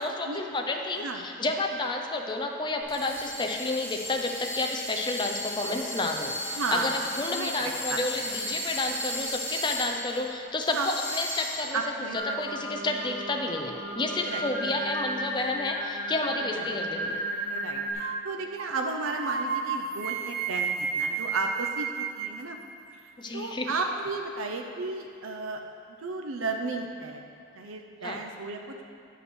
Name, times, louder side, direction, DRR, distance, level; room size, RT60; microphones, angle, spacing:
voice 1, 0.0-17.2 23.2-23.7 28.0-28.2, left 2 dB, 20° left, 2 dB, 0.6 m, -30 dB
sound 1, 2.8-10.2 10.6-11.8, left 1 dB, 10° right, 2.3 m, -35 dB
voice 2, 6.6-7.0 7.3-8.0 8.3-8.4 10.7-10.9 11.7-12.4 14.3-14.4 16.5-16.7 17.5-22.6 23.3-25.6 26.0-27.2 27.6-28.9, right 3 dB, 80° right, 3 dB, 0.7 m, -33 dB
Singing, 12.1-17.9, right 1 dB, 5° left, 1.5 m, -34 dB
sound 2, 18.0-18.2 18.6-18.7 19.0-22.4, right 6 dB, 50° right, 0.4 m, -31 dB
9.2 x 5.5 x 6.2 m, 2.5 s
head